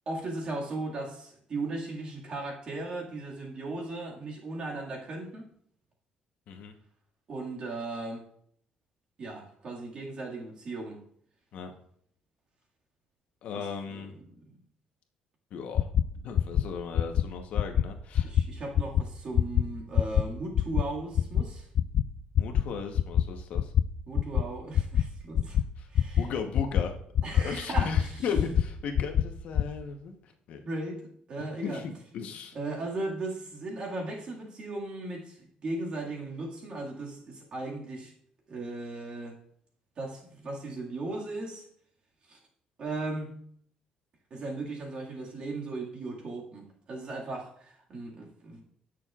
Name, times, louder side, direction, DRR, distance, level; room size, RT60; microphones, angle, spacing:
voice 1, 0.1-5.5 7.3-8.3 9.2-11.0 13.5-14.6 18.2-21.7 24.1-25.6 25.9-26.2 27.2-28.1 30.6-31.0 31.3-31.8 32.5-38.1 38.5-39.4 40.0-41.7 42.3-42.4 42.8-43.4 44.3-48.6, right 2 dB, 40° right, -1 dB, 2.0 m, -37 dB
voice 2, 13.4-14.2 15.5-15.9 16.2-18.3 22.4-23.7 25.8-25.9 26.2-26.9 27.3-30.6 31.6-32.6, left 5 dB, 65° left, 5 dB, 1.1 m, -36 dB
sound 1, 15.7-16.0 16.3-16.6 16.9-17.2 17.5-17.8 18.1-18.4 18.7-19.0 19.3-19.6 19.9-20.2 20.5-20.8 21.1-21.4 21.7-22.0 22.3-22.6 22.9-23.2 23.5-23.8 24.1-24.4 24.7-25.0 25.3-25.6 25.9-26.2 26.5-26.8 27.1-27.4 27.7-28.0 28.3-28.6 28.9-29.2 29.5-29.6, left 10 dB, 50° left, 0.4 m, -23 dB
16.5 x 6.4 x 2.4 m, 0.64 s
cardioid pair, 140°, 2 cm